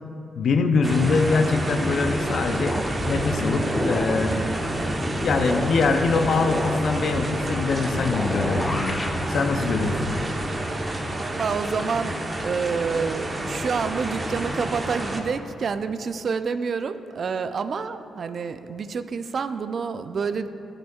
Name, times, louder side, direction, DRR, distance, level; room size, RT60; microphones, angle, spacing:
voice 1, 0.4-2.8 3.1-4.3 5.2-9.0 9.3-10.1, left 4 dB, 70° left, 6 dB, 0.5 m, -23 dB
sound 1, 0.8-15.2, right 1 dB, 30° right, 0.9 m, -29 dB
sound 2, 2.0-10.9, left 1 dB, 20° left, 0.6 m, -32 dB
voice 2, 11.0-20.5, right 5 dB, 60° right, 11 dB, 0.3 m, -28 dB
12.5 x 5.1 x 2.3 m, 2.8 s
supercardioid pair, 50°, 0 cm